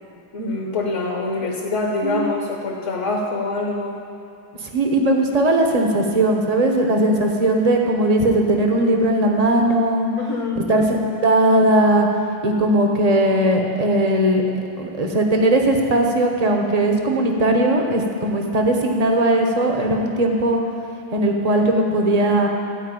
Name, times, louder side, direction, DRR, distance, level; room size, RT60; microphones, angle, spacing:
voice 1, 0.3-4.0 10.2-10.7, left 3 dB, 45° left, 0 dB, 1.2 m, -25 dB
voice 2, 4.7-10.1 10.7-10.9 11.2-12.1 12.4-14.4 14.8-20.6 21.1-22.5, right 1 dB, 30° right, 2 dB, 0.7 m, -18 dB
14.0 x 4.7 x 9.0 m, 2.8 s
omnidirectional pair, 2.1 m